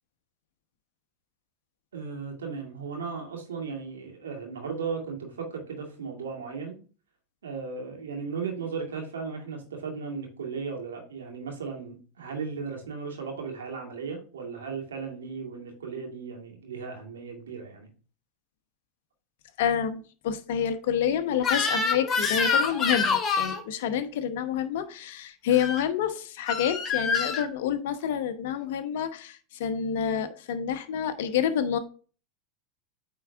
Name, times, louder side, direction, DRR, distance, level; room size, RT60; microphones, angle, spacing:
voice 1, 1.9-6.8 7.4-17.9, right 5 dB, 85° right, 1 dB, 2.2 m, -36 dB
voice 2, 19.6-31.8, left 8 dB, 70° left, 10 dB, 0.9 m, -28 dB
Crying sobbing / Screech, 21.4-23.6 25.5-25.8 26.5-27.4, left 5 dB, 30° left, 1.5 m, -26 dB
9.0 x 3.9 x 3.5 m, 0.39 s
hypercardioid pair, 95°, 0 cm